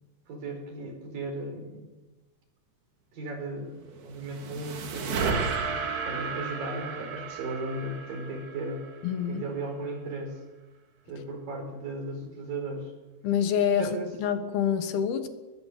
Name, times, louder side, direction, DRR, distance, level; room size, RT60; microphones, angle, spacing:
voice 1, 0.3-1.9 3.1-8.9 9.3-10.4 11.1-12.9 13.8-14.1, right 2 dB, 65° right, 4 dB, 6.3 m, -36 dB
sound 1, 3.9-9.3, right 5 dB, 85° right, 4.6 m, -33 dB
voice 2, 9.0-9.4 13.2-15.3, left 8 dB, 80° left, 8 dB, 3.5 m, -27 dB
23.0 x 21.0 x 6.9 m, 1.1 s
omnidirectional pair, 4.4 m